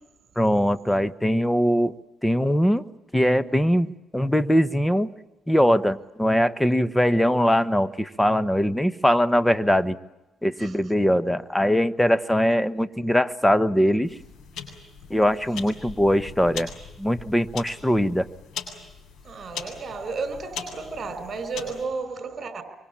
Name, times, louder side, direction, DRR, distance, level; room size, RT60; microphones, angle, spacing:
voice 1, 0.4-2.0 2.2-2.8 3.1-5.1 5.5-10.0 10.4-14.1 15.1-16.7 17.0-18.3, equal, 5° left, 1.2 m, -21 dB
sound 1, 14.0-21.8, left 6 dB, 75° left, 7.9 m, -40 dB
voice 2, 19.2-22.6, right 4 dB, 45° right, 5.3 m, -33 dB
25.5 x 25.0 x 8.7 m
cardioid pair, 90°, 0 cm